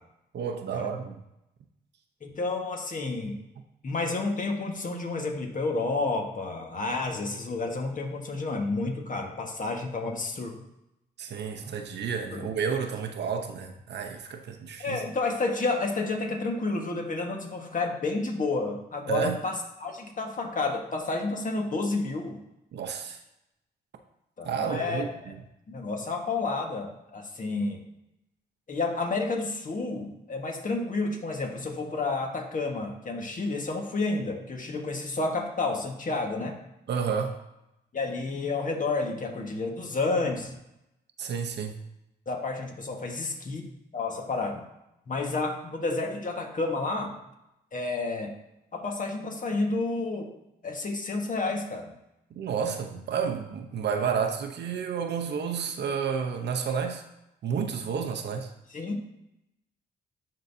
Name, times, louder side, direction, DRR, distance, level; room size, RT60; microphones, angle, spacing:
voice 1, 0.3-1.2 11.2-15.0 19.1-19.4 22.7-23.2 24.4-25.3 36.9-37.3 41.2-41.7 52.3-57.0 57.4-58.5, right 6 dB, 75° right, 5 dB, 0.8 m, -31 dB
voice 2, 2.2-3.3 3.8-10.5 12.3-12.4 14.8-22.4 24.4-25.0 25.7-27.8 28.7-36.5 37.9-40.5 42.3-43.6 43.9-44.6 45.1-47.1 47.7-48.3 48.7-50.3 50.6-51.9 58.7-59.0, left 3 dB, 45° left, 2 dB, 1.5 m, -30 dB
11.0 x 3.9 x 2.7 m, 0.88 s
cardioid pair, 60°, 18 cm